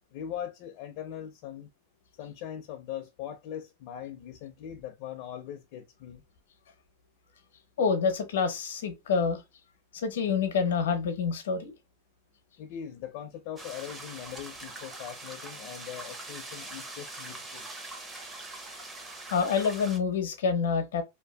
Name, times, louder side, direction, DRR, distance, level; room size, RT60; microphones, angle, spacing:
voice 1, 0.1-1.7 2.2-6.2 12.6-17.7, left 10 dB, 45° left, 0.4 m, -40 dB
voice 2, 7.8-9.4 9.9-11.7 19.3-21.0, left 5 dB, 85° left, 0.7 m, -27 dB
sound 1, 13.6-20.0, right 2 dB, 15° right, 0.5 m, -43 dB
2.6 x 2.2 x 2.2 m
supercardioid pair, 150°, 0 cm